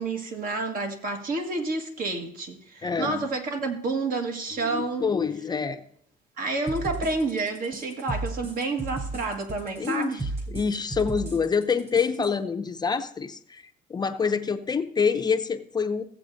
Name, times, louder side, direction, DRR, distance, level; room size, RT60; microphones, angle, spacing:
voice 1, 0.0-5.1 6.4-10.2, right 3 dB, 55° right, 1.6 m, -29 dB
voice 2, 2.8-3.3 4.7-5.8 9.8-10.2 10.5-13.6 13.9-16.0, left 5 dB, 25° left, 0.5 m, -26 dB
sound 1, 6.7-12.3, right 2 dB, 40° right, 3.3 m, -34 dB
15.5 x 7.8 x 2.6 m
cardioid pair, 110°, 17 cm